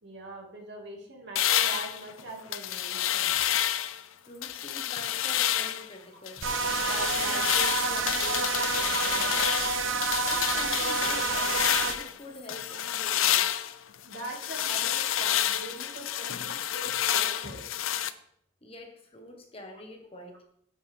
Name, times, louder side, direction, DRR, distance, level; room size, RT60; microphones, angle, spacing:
voice 1, 0.0-3.4 6.4-6.5 6.8-9.4 11.2-11.4 12.7-12.8 14.0-17.7, right 2 dB, 60° right, 0 dB, 2.4 m, -42 dB
sound 1, 1.4-4.0 4.4-5.9 6.3-12.1 12.5-18.1, left 11 dB, 90° left, 0.5 m, -29 dB
voice 2, 4.2-6.5 10.2-13.7 18.6-20.4, left 1 dB, 30° left, 3 dB, 1.4 m, -45 dB
sound 2, 6.4-11.9, right 4 dB, 75° right, 0.9 m, -28 dB
9.8 x 8.8 x 3.6 m, 0.70 s
head